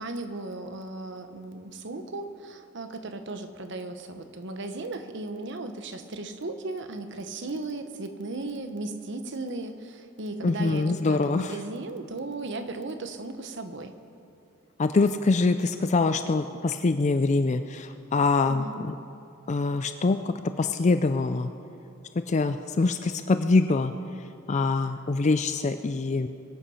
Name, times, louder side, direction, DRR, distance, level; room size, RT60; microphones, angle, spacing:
voice 1, 0.0-13.9 18.5-18.8, right 2 dB, 60° right, 8 dB, 1.0 m, -36 dB
voice 2, 10.4-11.6 14.8-18.9 19.5-21.5 22.3-23.9 24.5-26.3, left 3 dB, 35° left, 9 dB, 0.4 m, -24 dB
23.0 x 8.5 x 5.7 m, 2.7 s
head